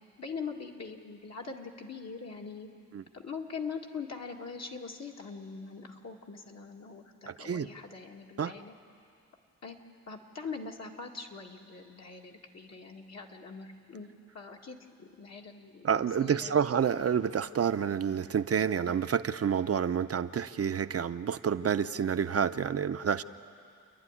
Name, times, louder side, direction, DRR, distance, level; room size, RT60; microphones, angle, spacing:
voice 1, 0.2-2.7 3.1-8.7 9.6-9.8 10.1-14.1 14.3-16.6, left 5 dB, 60° left, 1 dB, 2.0 m, -42 dB
voice 2, 7.3-7.7 8.4-8.5 15.8-23.2, right 7 dB, 55° right, 10 dB, 0.6 m, -29 dB
29.0 x 11.5 x 9.8 m, 2.4 s
cardioid pair, 75°, 29 cm